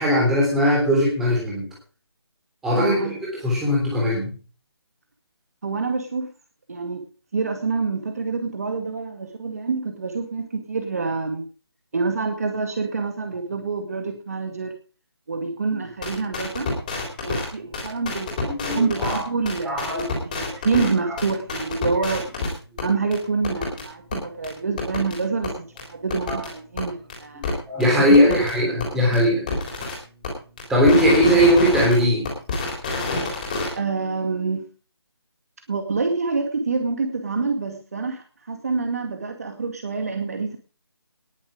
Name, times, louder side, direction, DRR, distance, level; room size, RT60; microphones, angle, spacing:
voice 1, 0.0-1.7 2.6-3.0 3.4-4.3 18.5-19.2 19.6-20.1 20.5-21.2 26.3-26.4 27.3-29.5 30.7-32.3, equal, 5° right, -5 dB, 3.4 m, -19 dB
voice 2, 2.7-3.2 5.6-6.3 6.7-7.0 7.3-11.5 11.9-14.7 15.3-16.7 17.2-20.1 20.4-22.3 22.8-27.4 28.0-28.8 29.1-29.2 29.8-29.9 33.8-34.7 35.7-40.6, right 4 dB, 35° right, 5 dB, 2.1 m, -27 dB
sound 1, 16.0-17.5 17.7-19.2 19.4-20.9 21.2-22.5 22.8-22.9 23.1-23.2 23.4-23.8 24.1-24.2 24.4-24.5 24.8-25.2 25.4-25.5 25.8-25.9 26.1-26.5 26.8-26.9 27.1-27.2 27.4-27.5 27.8-27.9 28.1-28.5 28.8-28.9 29.1-29.2 29.5-29.9 30.2-30.3 30.6-33.7, left 3 dB, 20° left, 3.6 m, -27 dB
19.0 x 7.5 x 5.0 m, 0.37 s
figure-of-eight pair, 175°, 14 cm